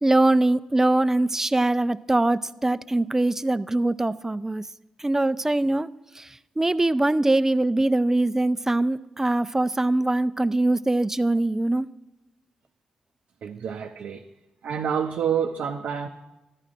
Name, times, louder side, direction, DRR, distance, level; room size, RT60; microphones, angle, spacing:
voice 1, 0.0-4.7 5.0-5.9 6.2-11.9, right 2 dB, 15° right, 15 dB, 0.3 m, -22 dB
voice 2, 13.4-14.2 14.6-16.1, right 7 dB, 75° right, 3 dB, 0.5 m, -28 dB
14.0 x 10.5 x 2.5 m, 1.0 s
cardioid pair, 60°, 3 cm